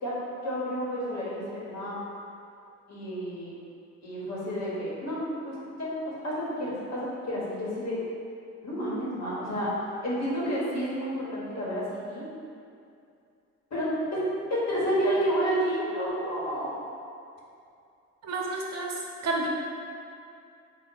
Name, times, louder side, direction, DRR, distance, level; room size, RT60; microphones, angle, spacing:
voice 1, 0.4-2.0 2.9-3.6 4.0-8.0 8.6-9.7 10.0-12.3 13.7-14.2 14.5-16.8, equal, 60° left, -7 dB, 1.3 m, -30 dB
voice 2, 18.2-18.9 19.2-19.5, right 3 dB, 60° right, -1 dB, 0.7 m, -30 dB
3.5 x 2.5 x 3.9 m, 2.5 s
cardioid pair, 90°, 30 cm